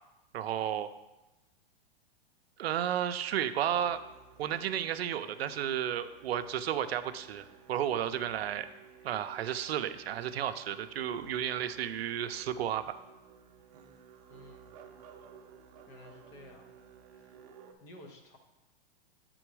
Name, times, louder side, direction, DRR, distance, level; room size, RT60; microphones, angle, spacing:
voice 1, 0.3-0.9 2.6-4.0 4.4-8.7 9.0-13.0, right 10 dB, 85° right, 11 dB, 0.6 m, -33 dB
Musical instrument, 3.7-17.7, right 7 dB, 45° right, 0.7 m, -55 dB
voice 2, 14.3-14.8 15.9-16.7 17.1-17.4 17.8-18.4, left 1 dB, 10° left, 3 dB, 0.3 m, -53 dB
7.9 x 3.8 x 4.7 m, 1.0 s
hypercardioid pair, 155°, 30 cm